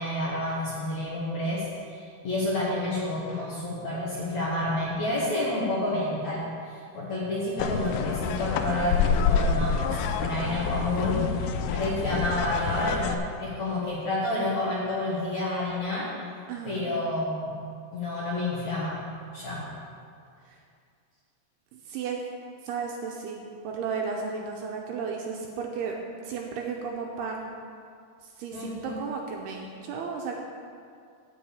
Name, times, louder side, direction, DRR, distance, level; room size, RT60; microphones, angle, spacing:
voice 1, 0.0-16.1 16.6-17.5 17.9-19.0 19.3-19.7 28.5-29.0, left 1 dB, 60° left, -6 dB, 2.0 m, -29 dB
sound 1, 7.6-13.2, left 6 dB, 85° left, 2.3 m, -27 dB
voice 2, 16.5-16.9 21.7-22.2 22.6-26.0 26.3-27.5 28.4-30.4, right 5 dB, 80° right, 0 dB, 2.5 m, -34 dB
12.5 x 4.8 x 8.5 m, 2.3 s
omnidirectional pair, 5.2 m